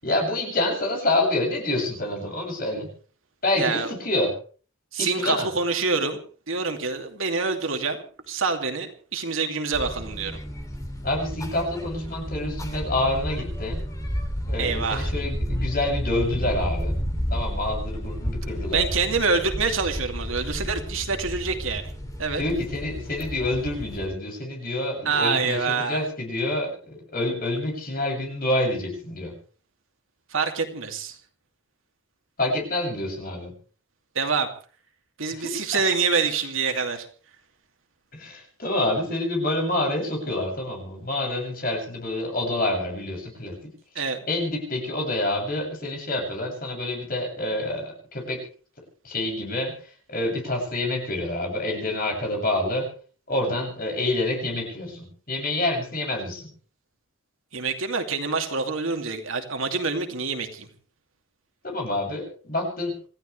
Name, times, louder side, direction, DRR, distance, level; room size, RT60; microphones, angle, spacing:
voice 1, 0.0-2.9 3.4-4.3 5.0-5.5 11.0-13.8 14.5-17.0 17.3-18.8 22.4-29.3 32.4-33.5 35.3-35.5 38.1-43.7 44.3-48.4 49.0-49.7 50.1-52.9 53.3-56.5 61.6-62.9, left 1 dB, 40° left, 1 dB, 7.7 m, -27 dB
voice 2, 3.5-3.9 4.9-6.2 6.5-10.4 14.6-15.1 18.7-21.9 22.2-22.4 25.0-26.0 30.3-31.2 34.1-34.5 35.2-37.1 43.9-44.2 57.5-60.7, right 4 dB, 75° right, 5 dB, 2.7 m, -26 dB
sound 1, 9.7-24.1, equal, 15° left, 3.0 m, -31 dB
27.5 x 15.0 x 3.4 m, 0.40 s
head